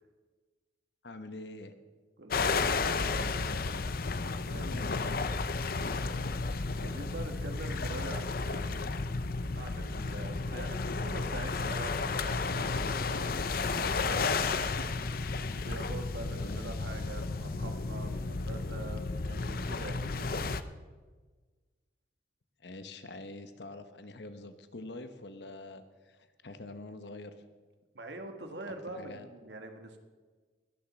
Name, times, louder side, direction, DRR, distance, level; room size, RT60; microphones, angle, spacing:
voice 1, 1.0-1.7 3.1-3.8 4.6-5.4 16.4-16.7 22.6-27.3 28.9-29.3, left 2 dB, 70° left, 9 dB, 1.0 m, -45 dB
voice 2, 2.2-3.2 4.4-4.8 6.8-8.9 9.5-15.1 15.4-20.5 27.9-30.0, right 2 dB, 70° right, 5 dB, 1.7 m, -44 dB
sound 1, 2.3-20.6, left 4 dB, 50° left, 0.6 m, -33 dB
sound 2, 4.0-18.1, left 1 dB, 85° left, 5.7 m, -56 dB
21.5 x 7.3 x 6.2 m, 1.4 s
head